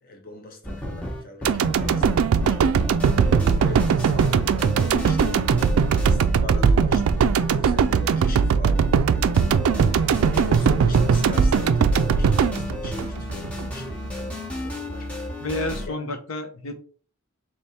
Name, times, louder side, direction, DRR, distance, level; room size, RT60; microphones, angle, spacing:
voice 1, 0.0-2.6 3.2-5.5 6.0-9.2 9.8-15.1 15.9-16.0, left 2 dB, 40° left, 1.1 m, -41 dB
sound 1, 0.6-15.9, left 1 dB, 5° left, 0.9 m, -33 dB
sound 2, 1.4-13.7 14.0-14.1, right 6 dB, 80° right, 0.3 m, -20 dB
voice 2, 15.4-16.7, left 2 dB, 70° left, 0.8 m, -30 dB
3.4 x 3.0 x 4.2 m
head